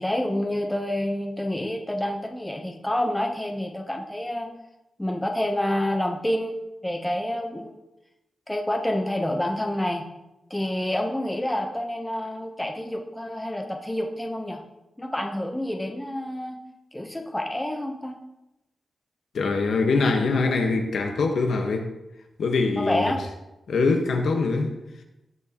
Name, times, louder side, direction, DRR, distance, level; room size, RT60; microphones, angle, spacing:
voice 1, 0.0-4.5 5.0-6.6 6.8-7.7 8.5-10.1 10.5-14.6 15.0-16.6 16.9-18.2 22.8-23.2, left 1 dB, 10° left, 1.0 m, -28 dB
voice 2, 19.3-21.9 22.4-23.1 23.7-24.8, left 3 dB, 75° left, 1.4 m, -23 dB
18.0 x 6.3 x 3.1 m
wide cardioid pair, 135°, 0 cm